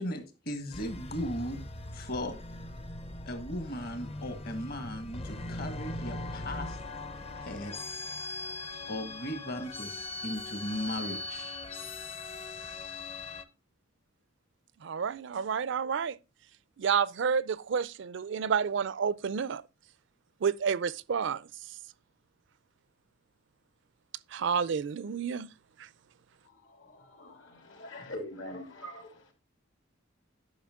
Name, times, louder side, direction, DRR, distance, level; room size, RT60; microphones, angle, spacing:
voice 1, 0.0-1.6 1.9-2.4 3.3-6.8 7.4-8.0 8.9-11.6, equal, 50° left, 1.6 m, -37 dB
sound 1, 0.7-13.4, left 2 dB, 30° left, 0.6 m, -40 dB
voice 2, 14.8-16.2 16.8-19.6 20.4-21.4 24.3-25.5, right 6 dB, 65° right, 0.4 m, -30 dB
voice 3, 26.4-29.3, left 1 dB, 70° left, 2.6 m, -44 dB
10.5 x 5.7 x 3.6 m
head